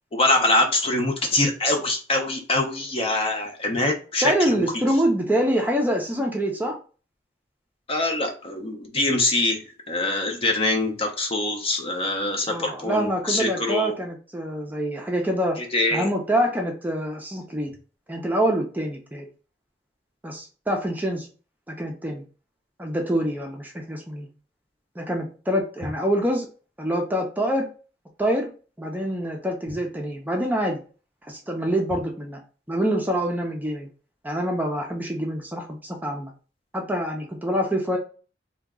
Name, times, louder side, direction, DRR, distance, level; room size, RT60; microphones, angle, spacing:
voice 1, 0.1-4.6 7.9-13.9 15.6-16.1, left 2 dB, 35° left, 3 dB, 0.6 m, -24 dB
voice 2, 4.2-6.8 12.5-15.6 15.9-17.7 18.1-19.2 20.2-21.3 21.7-22.2 22.8-24.3 25.0-26.5 26.8-27.7 28.2-28.5 28.8-30.8 31.3-32.4 32.7-33.9 34.2-36.3 36.7-38.0, equal, 10° right, 1 dB, 0.5 m, -25 dB
2.9 x 2.2 x 3.6 m, 0.36 s
head